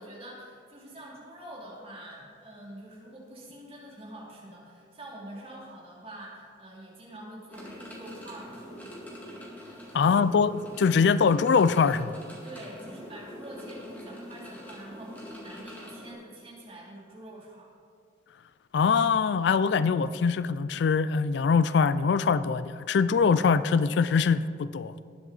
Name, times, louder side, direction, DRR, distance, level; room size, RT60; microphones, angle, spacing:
voice 1, 0.0-8.7 10.0-10.3 12.4-17.7, right 1 dB, 30° right, -5 dB, 2.9 m, -46 dB
sound 1, 7.5-16.1, equal, 10° left, 2.1 m, -44 dB
voice 2, 9.9-12.2 18.7-24.9, left 5 dB, 65° left, 15 dB, 0.3 m, -23 dB
19.0 x 7.3 x 4.1 m, 2.2 s
head